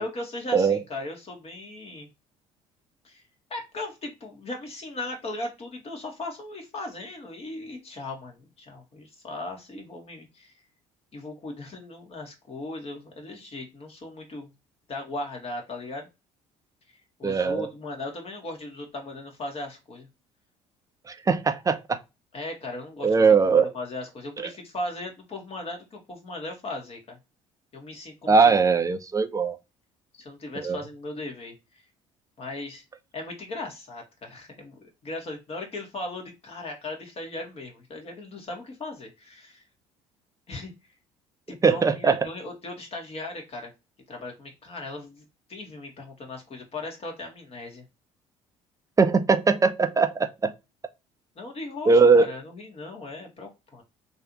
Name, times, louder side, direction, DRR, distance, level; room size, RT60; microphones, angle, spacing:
voice 1, 0.0-2.1 3.0-3.2 3.5-10.5 11.1-14.5 14.9-16.1 17.2-20.1 22.3-27.2 27.7-28.5 30.1-31.8 32.4-32.8 33.1-39.6 40.5-40.7 41.5-43.7 44.1-47.8 51.3-53.8, left 2 dB, 40° left, 1.5 m, -37 dB
voice 2, 17.2-17.7 21.1-22.0 23.0-23.7 24.4-24.5 28.3-29.6 30.6-30.8 41.6-42.2 49.0-50.5 51.9-52.3, right 4 dB, 20° right, 0.6 m, -20 dB
3.2 x 2.7 x 2.9 m
hypercardioid pair, 60°, 16 cm